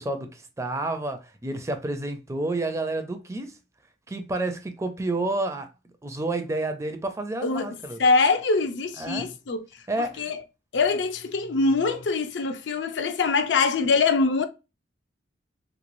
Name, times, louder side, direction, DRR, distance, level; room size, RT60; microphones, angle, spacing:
voice 1, 0.0-3.6 4.1-5.7 6.0-8.0 9.0-9.3 9.9-10.3, right 2 dB, 15° right, 0.4 m, -30 dB
voice 2, 8.0-9.6 10.2-10.4 10.7-14.5, left 4 dB, 70° left, 0.5 m, -23 dB
3.2 x 3.0 x 2.5 m
head